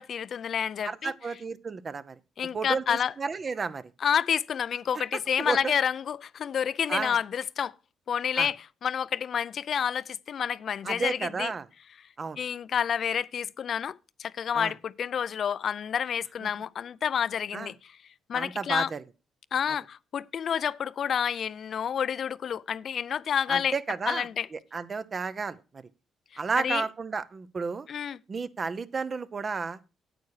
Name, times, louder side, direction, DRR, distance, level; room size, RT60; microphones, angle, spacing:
voice 1, 0.0-1.1 2.4-3.1 4.0-7.7 8.1-8.6 8.8-11.5 12.4-18.0 18.3-18.9 19.5-23.7 24.1-24.5 26.6-26.8 27.9-28.2, left 8 dB, 55° left, 0.4 m, -29 dB
voice 2, 0.8-2.2 2.5-3.8 5.4-5.7 6.9-7.2 8.4-8.5 10.8-11.7 12.2-12.4 14.5-14.7 16.4-16.5 17.5-17.7 18.3-19.0 23.5-25.6 26.4-27.9 28.3-29.8, right 4 dB, 40° right, 0.7 m, -32 dB
9.2 x 8.4 x 4.8 m
cardioid pair, 90°, 0 cm